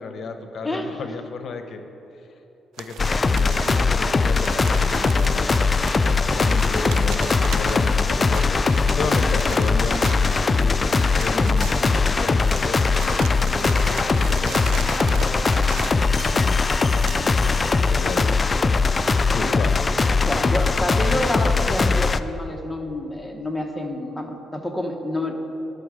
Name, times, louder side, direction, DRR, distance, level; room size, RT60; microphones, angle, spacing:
voice 1, 0.0-1.8 2.8-5.5 6.0-10.8 11.2-14.7 15.7-16.8 17.2-18.4 19.3-19.8, left 4 dB, 60° left, 7 dB, 0.8 m, -33 dB
voice 2, 0.6-1.0 17.2-17.7 20.2-25.3, left 1 dB, 10° left, 2 dB, 1.0 m, -28 dB
sound 1, 2.8-17.2, right 9 dB, 75° right, 0.3 m, -38 dB
sound 2, 3.0-22.2, left 4 dB, 30° left, 0.3 m, -20 dB
11.0 x 6.8 x 4.9 m, 2.9 s
cardioid pair, 90°, 0 cm